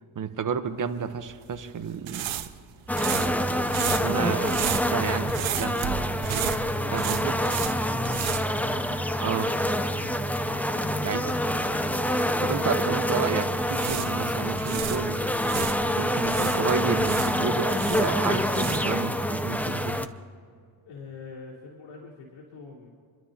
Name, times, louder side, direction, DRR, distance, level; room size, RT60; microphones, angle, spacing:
voice 1, 0.1-2.3 3.1-3.5 4.0-6.0 6.9-7.4 9.2-9.5 11.0-11.2 12.4-15.2 16.0-20.1, right 6 dB, 40° right, 8 dB, 1.0 m, -31 dB
sound 1, 1.2-9.3 9.5-9.7 13.5-15.8 16.2-19.0, right 11 dB, 70° right, 0.9 m, -33 dB
sound 2, 2.9-20.1, equal, 5° left, 0.6 m, -26 dB
voice 2, 7.9-8.4 10.8-11.8 20.8-22.9, left 4 dB, 90° left, -5 dB, 3.7 m, -44 dB
29.5 x 12.5 x 2.9 m, 2.2 s
cardioid pair, 95°, 49 cm